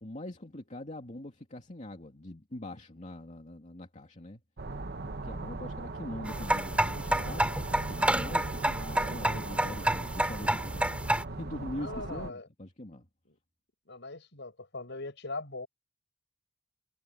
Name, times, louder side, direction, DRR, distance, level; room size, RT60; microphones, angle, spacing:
voice 1, 0.0-4.4 5.0-10.8 11.3-13.0, left 1 dB, 40° left, 2.6 m, -43 dB
sound 1, 4.6-12.3, right 3 dB, 55° right, 1.0 m, -39 dB
sound 2, 6.3-11.2, right 1 dB, 5° right, 2.5 m, -29 dB
voice 2, 11.8-12.5 13.9-15.7, left 3 dB, 65° left, 7.8 m, -40 dB
head